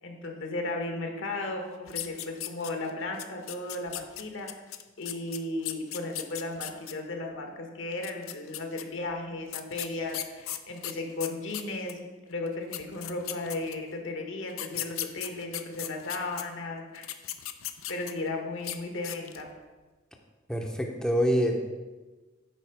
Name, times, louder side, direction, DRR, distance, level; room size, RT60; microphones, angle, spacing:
voice 1, 0.0-4.5 5.0-17.1 17.9-19.5, left 2 dB, 65° left, 3 dB, 1.3 m, -35 dB
sound 1, 1.9-2.9 3.2-6.9 7.9-8.8 9.5-12.0 12.5-12.6 12.7-13.9 14.5-16.4 16.9-18.3 18.6-18.8 19.0-19.5, left 13 dB, 80° left, 0.5 m, -37 dB
voice 2, 20.5-21.6, equal, 5° left, 1 dB, 0.7 m, -26 dB
9.1 x 4.5 x 5.8 m, 1.3 s
head